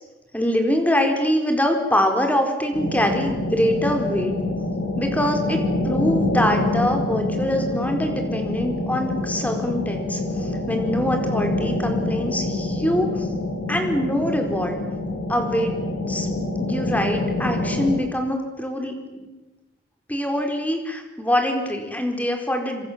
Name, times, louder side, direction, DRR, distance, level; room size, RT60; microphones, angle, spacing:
voice 1, 0.3-4.3 5.0-13.3 13.7-14.8 15.3-15.8 16.1-16.3 16.6-19.3 20.1-22.8, equal, 10° left, 4 dB, 4.5 m, -24 dB
sound 1, 2.7-17.9, left 2 dB, 85° left, 7.4 m, -26 dB
28.0 x 25.5 x 7.6 m, 1.1 s
head